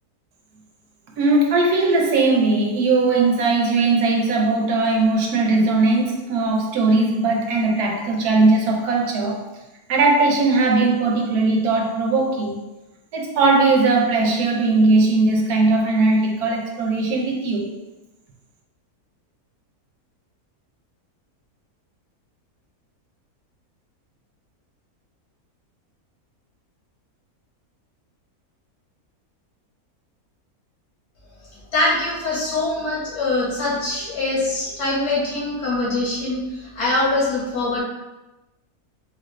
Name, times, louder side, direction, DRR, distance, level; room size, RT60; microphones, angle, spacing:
voice 1, 1.2-9.4 9.9-12.6 13.1-17.7, right 3 dB, 85° right, 1.3 m, -19 dB
voice 2, 31.7-37.8, left 2 dB, 90° left, 1.9 m, -23 dB
4.8 x 2.5 x 3.1 m
omnidirectional pair, 1.6 m